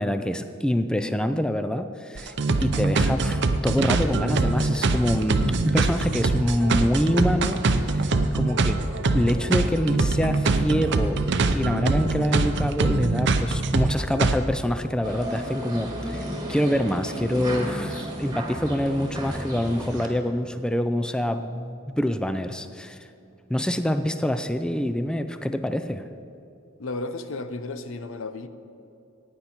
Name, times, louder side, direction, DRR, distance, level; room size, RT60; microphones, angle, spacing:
voice 1, 0.0-2.3 2.6-8.8 9.1-11.2 11.5-23.1 23.5-26.1, equal, 5° left, 9 dB, 0.4 m, -26 dB
sound 1, 2.2-14.4, right 3 dB, 60° right, 0.6 m, -23 dB
sound 2, 15.0-20.1, right 1 dB, 20° right, 1.6 m, -33 dB
voice 2, 26.8-28.5, left 2 dB, 80° left, 10 dB, 0.7 m, -33 dB
15.0 x 9.5 x 4.4 m, 2.6 s
head